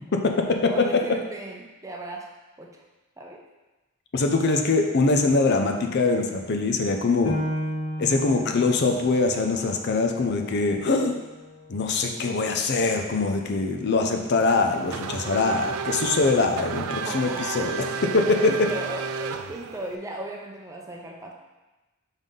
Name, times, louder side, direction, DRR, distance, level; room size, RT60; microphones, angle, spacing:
voice 1, 0.1-1.0 4.1-7.4 8.0-11.2 11.7-18.7, left 3 dB, 55° left, 4 dB, 0.5 m, -23 dB
voice 2, 0.6-2.3 2.6-2.8 3.2-3.4 12.0-12.5 17.0-17.7 18.4-21.3, right 1 dB, 15° right, 0 dB, 0.7 m, -37 dB
Piano, 7.2-12.4 12.9-13.0 13.6-14.1, left 1 dB, 85° left, 1.5 m, -35 dB
Race car auto racing / Accelerating revving vroom, 14.5-20.0, right 5 dB, 90° right, 0.4 m, -32 dB
5.6 x 5.4 x 3.7 m, 1.1 s
head